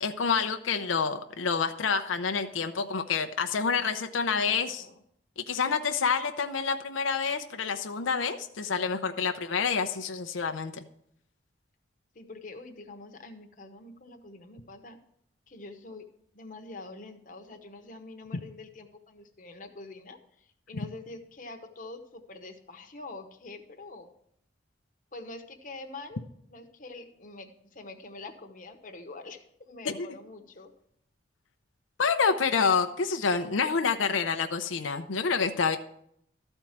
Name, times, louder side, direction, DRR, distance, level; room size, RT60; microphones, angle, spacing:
voice 1, 0.0-4.8 5.4-10.8 29.9-30.1 32.0-35.8, left 5 dB, 90° left, 7 dB, 0.6 m, -28 dB
voice 2, 4.2-4.9 12.1-15.0 15.5-16.0 16.3-24.1 25.1-26.2 26.5-30.7, left 2 dB, 45° left, 5 dB, 1.0 m, -45 dB
13.0 x 4.4 x 7.3 m, 0.72 s
head